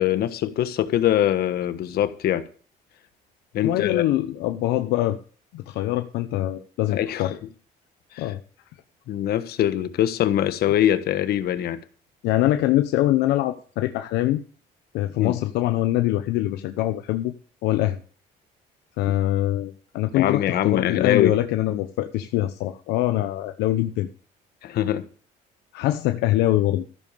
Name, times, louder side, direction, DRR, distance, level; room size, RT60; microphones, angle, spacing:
voice 1, 0.0-2.4 3.5-4.0 6.9-7.3 8.1-8.3 9.1-11.8 15.2-15.3 20.1-21.4 24.6-25.0, left 11 dB, 70° left, 1.4 m, -23 dB
voice 2, 3.6-5.2 5.5-7.4 8.2-8.4 12.2-14.4 14.9-17.3 17.6-18.0 19.0-24.1 25.7-26.8, left 14 dB, 90° left, 0.9 m, -23 dB
14.0 x 7.3 x 6.8 m
cardioid pair, 110°, 17 cm